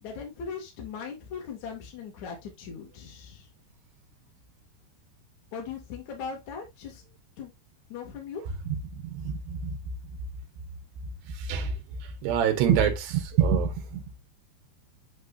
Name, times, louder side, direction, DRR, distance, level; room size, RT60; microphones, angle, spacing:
voice 1, 0.0-3.5 5.5-7.0 7.4-7.5 7.9-8.4, left 6 dB, 45° left, 3.2 m, -39 dB
voice 2, 8.7-9.8 11.3-11.8 12.2-14.0, right 7 dB, 70° right, 3.3 m, -26 dB
9.2 x 4.8 x 2.6 m
omnidirectional pair, 5.4 m